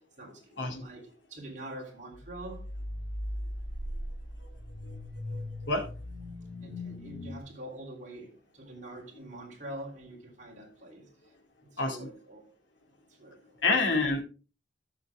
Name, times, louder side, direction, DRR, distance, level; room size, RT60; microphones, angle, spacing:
voice 1, 0.2-2.7 6.6-11.1 11.7-12.5 13.1-13.6, right 1 dB, 40° right, 3.6 m, -45 dB
sound 1, 2.1-7.4, left 1 dB, 25° left, 2.2 m, -39 dB
voice 2, 5.3-5.9 11.8-12.1 13.6-14.2, left 3 dB, 75° left, 2.6 m, -28 dB
13.5 x 6.3 x 3.6 m
head